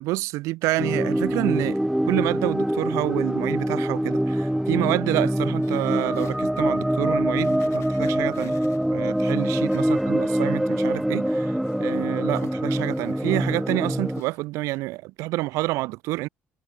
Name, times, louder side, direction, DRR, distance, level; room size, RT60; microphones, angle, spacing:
voice 1, 0.0-1.8 2.1-8.6 8.9-16.3, right 20 dB, 75° right, 0.8 m, -28 dB
sound 1, 0.8-14.2, equal, 5° right, 0.6 m, -24 dB
sound 2, 5.1-6.4 6.9-7.0 7.4-10.3 10.7-13.7 14.0-14.4 14.7-14.8, left 12 dB, 65° left, 2.9 m, -52 dB
supercardioid pair, 70°, 5 cm